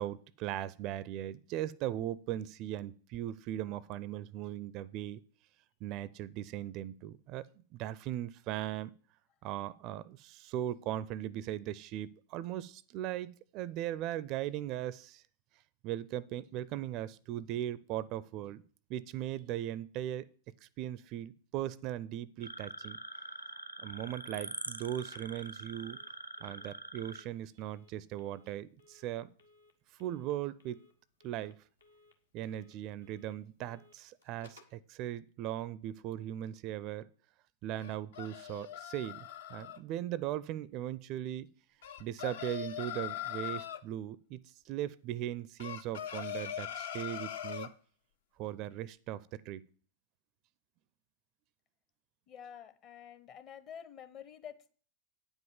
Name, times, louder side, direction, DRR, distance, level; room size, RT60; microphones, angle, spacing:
voice 1, 0.0-5.2 5.8-7.5 7.7-8.9 9.4-15.2 15.8-18.6 18.9-20.3 20.6-23.0 23.8-26.0 26.4-29.3 30.0-30.8 31.2-31.6 32.3-37.1 37.6-41.5 42.0-44.4 44.6-47.7 48.4-49.7, right 12 dB, 40° right, 0.4 m, -38 dB
sound 1, 22.4-27.2, right 2 dB, 85° right, 0.6 m, -44 dB
Telephone, 25.0-34.8, left 3 dB, 80° left, 1.4 m, -64 dB
sound 2, 37.8-39.8 41.8-43.8 45.6-47.7, left 11 dB, 60° left, 0.6 m, -41 dB
voice 2, 52.3-54.7, left 8 dB, 35° left, 0.8 m, -49 dB
9.3 x 5.4 x 7.1 m
figure-of-eight pair, 90°, 0 cm